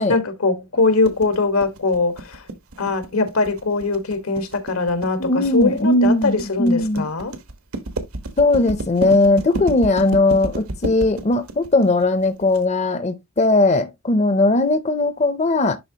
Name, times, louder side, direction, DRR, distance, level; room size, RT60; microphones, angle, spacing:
voice 1, 0.1-2.5 2.8-7.3, left 3 dB, 85° left, 1.5 m, -21 dB
sound 1, 1.0-12.6, right 2 dB, 80° right, 1.2 m, -31 dB
voice 2, 5.2-7.1 8.4-15.8, left 2 dB, 30° left, 0.6 m, -18 dB
11.0 x 3.8 x 2.8 m
head